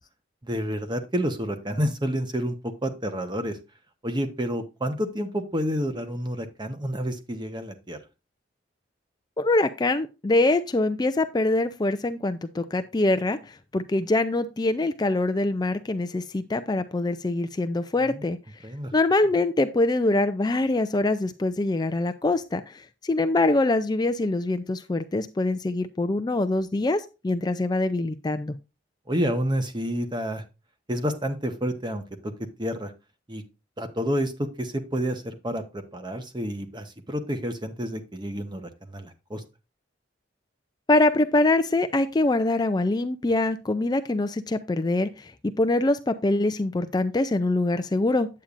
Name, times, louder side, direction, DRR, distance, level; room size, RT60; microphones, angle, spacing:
voice 1, 0.4-3.6 4.0-8.0 18.0-18.2 18.6-18.9 29.1-30.4 30.9-32.3 32.6-32.9 33.3-33.4 33.8-39.4, equal, 25° right, 7 dB, 1.1 m, -29 dB
voice 2, 9.4-18.4 18.9-28.5 40.9-45.3 45.6-48.3, left 2 dB, 20° left, 10 dB, 0.4 m, -24 dB
8.8 x 8.5 x 2.5 m, 0.28 s
head